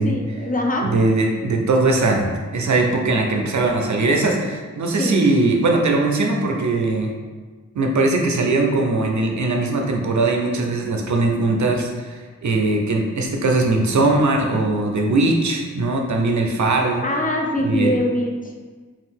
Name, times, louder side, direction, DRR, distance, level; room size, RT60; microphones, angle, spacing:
voice 1, 0.0-1.0 5.0-5.2 17.0-18.5, left 1 dB, 30° left, 1 dB, 0.4 m, -23 dB
voice 2, 0.8-7.1 7.8-17.0 17.6-17.9, right 2 dB, 70° right, 1 dB, 0.5 m, -20 dB
2.7 x 2.4 x 3.5 m, 1.4 s
cardioid pair, 50°, 30 cm